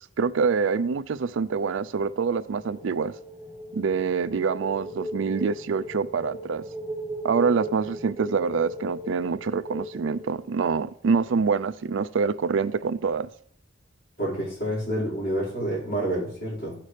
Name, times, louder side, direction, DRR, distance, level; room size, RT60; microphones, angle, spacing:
voice 1, 0.2-3.1 3.7-6.6 7.2-13.3, right 5 dB, 75° right, 0.4 m, -25 dB
sound 1, 2.2-10.9, right 1 dB, 10° right, 0.8 m, -38 dB
voice 2, 14.2-16.7, right 1 dB, 50° left, 4.8 m, -28 dB
15.5 x 5.9 x 3.3 m
head